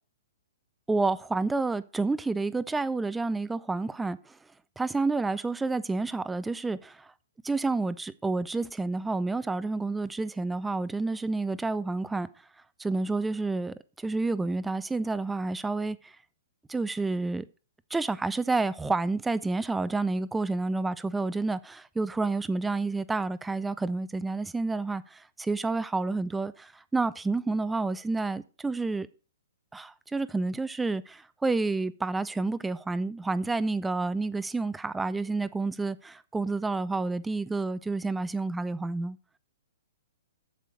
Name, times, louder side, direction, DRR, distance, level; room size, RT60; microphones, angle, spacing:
voice 1, 0.9-4.4 4.8-7.1 7.4-12.3 12.8-16.1 16.7-17.5 17.9-29.1 29.7-39.2, right 3 dB, 5° right, 0.4 m, -29 dB
8.2 x 7.5 x 6.3 m
figure-of-eight pair, 115°, 0 cm